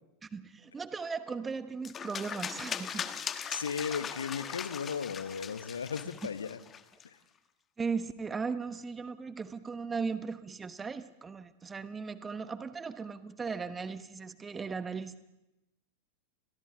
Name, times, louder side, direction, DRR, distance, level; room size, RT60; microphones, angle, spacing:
voice 1, 0.2-3.1 7.8-15.2, right 5 dB, 15° right, 13 dB, 1.0 m, -37 dB
sound 1, 1.8-7.0, left 7 dB, 25° left, 1.1 m, -39 dB
voice 2, 3.5-6.6 7.0-7.2, left 6 dB, 70° left, 14 dB, 1.0 m, -36 dB
29.5 x 22.5 x 3.9 m, 0.94 s
figure-of-eight pair, 90°, 0 cm